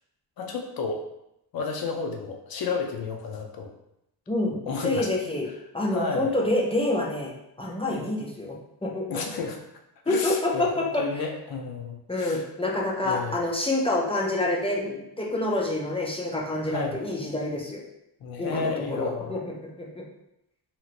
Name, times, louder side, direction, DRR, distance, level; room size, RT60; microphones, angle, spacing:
voice 1, 0.4-1.0 1.5-3.7 4.7-5.1 5.9-6.4 7.9-8.1 9.1-9.6 10.1-12.5 13.0-13.5 16.7-17.0 18.2-19.4, left 4 dB, 60° left, 3 dB, 0.6 m, -32 dB
voice 2, 4.3-4.6 4.8-5.5 5.7-7.3 7.6-8.5 8.8-9.2 10.1-11.0 12.1-17.8 18.4-19.5 19.8-20.0, left 2 dB, 15° left, -3 dB, 0.4 m, -27 dB
2.9 x 2.8 x 2.4 m, 0.82 s
wide cardioid pair, 140°, 41 cm